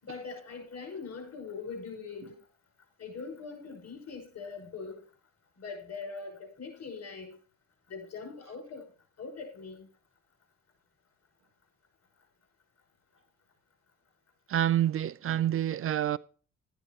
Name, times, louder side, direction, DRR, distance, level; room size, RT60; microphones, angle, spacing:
voice 1, 0.0-2.4 3.0-5.1 5.6-7.4 7.9-8.9 9.2-9.9, left 4 dB, 55° left, 5.9 m, -42 dB
voice 2, 14.5-16.2, right 11 dB, 45° right, 0.4 m, -27 dB
12.5 x 10.0 x 3.0 m
cardioid pair, 90°, 30 cm